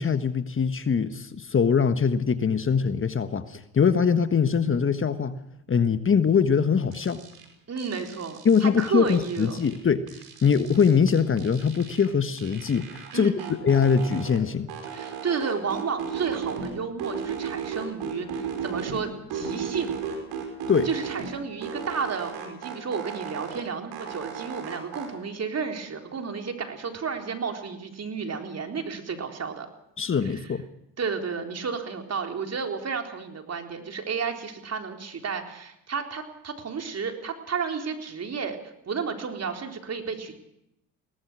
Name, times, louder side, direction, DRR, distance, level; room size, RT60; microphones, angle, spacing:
voice 1, 0.0-5.4 5.7-7.2 8.4-10.1 10.4-13.3 13.6-14.7 20.7-20.9 30.0-30.6, left 6 dB, 35° left, 11 dB, 1.4 m, -22 dB
sound 1, 6.9-7.4 7.8-9.8 10.1-12.1 12.4-14.4 14.7-16.7 17.0-19.0 19.3-21.3 21.6-23.6 23.9-25.1, right 7 dB, 75° right, 5.6 m, -35 dB
voice 2, 7.7-9.6 13.1-13.6 14.9-20.0 20.8-29.7 30.2-30.5 31.0-40.3, right 5 dB, 40° right, 4 dB, 4.0 m, -32 dB
22.5 x 18.5 x 6.3 m, 0.81 s
supercardioid pair, 75°, 37 cm